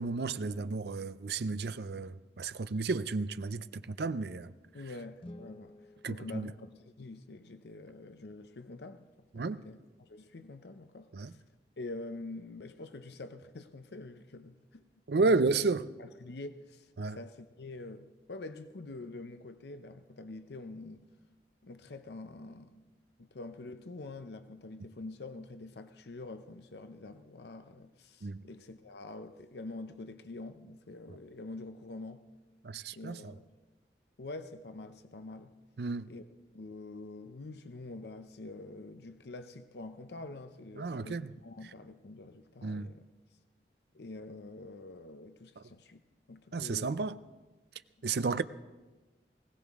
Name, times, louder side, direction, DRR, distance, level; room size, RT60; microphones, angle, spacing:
voice 1, 0.0-4.5 6.0-6.5 9.3-9.6 11.1-11.3 15.1-15.9 17.0-17.2 28.2-28.4 32.6-33.3 35.8-36.1 40.8-41.3 42.6-42.9 46.5-47.2 48.0-48.4, right 3 dB, 70° right, 0.5 m, -32 dB
voice 2, 4.7-9.1 9.3-11.4 11.8-14.8 15.2-15.4 16.0-21.0 21.6-22.8 23.2-32.2 32.9-33.5 34.2-35.5 36.1-36.3 36.5-43.0 43.9-46.0 46.3-47.0, left 2 dB, 75° left, 0.7 m, -46 dB
sound 1, 5.2-7.4, left 1 dB, 30° left, 0.6 m, -53 dB
20.0 x 17.0 x 3.6 m
head